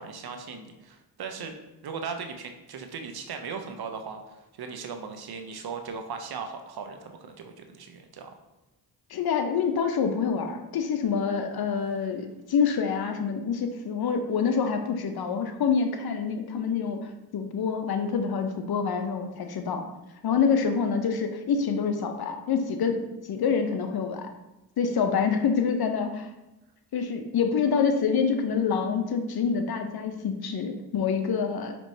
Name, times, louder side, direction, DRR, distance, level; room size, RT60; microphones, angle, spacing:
voice 1, 0.0-1.6 1.8-8.3, right 5 dB, 65° right, 6 dB, 0.6 m, -38 dB
voice 2, 9.1-17.0 17.3-19.8 20.2-23.0 23.3-24.3 24.8-26.3 26.9-31.8, left 6 dB, 65° left, 6 dB, 0.6 m, -26 dB
5.2 x 3.0 x 2.7 m, 1.0 s
cardioid pair, 50°, 40 cm